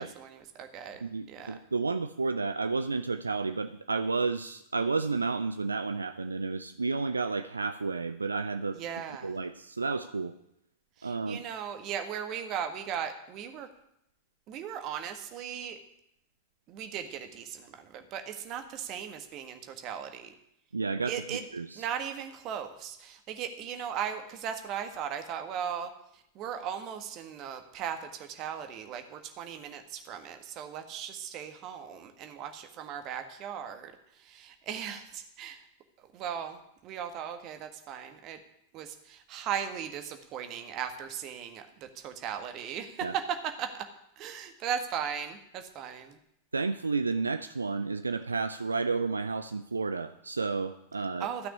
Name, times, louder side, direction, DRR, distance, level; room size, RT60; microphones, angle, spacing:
voice 1, 0.0-1.6 8.7-9.4 11.0-13.7 14.5-15.8 16.7-20.3 21.0-21.5 21.7-35.7 36.0-38.4 38.7-43.8 44.1-46.2 51.2-51.5, right 8 dB, 40° right, 7 dB, 1.6 m, -37 dB
voice 2, 1.0-8.8 9.2-10.3 11.0-11.4 20.7-21.1 21.5-21.7 43.0-43.1 46.5-51.3, right 4 dB, 80° right, 10 dB, 0.5 m, -31 dB
13.0 x 6.0 x 9.6 m, 0.78 s
figure-of-eight pair, 90°, 0 cm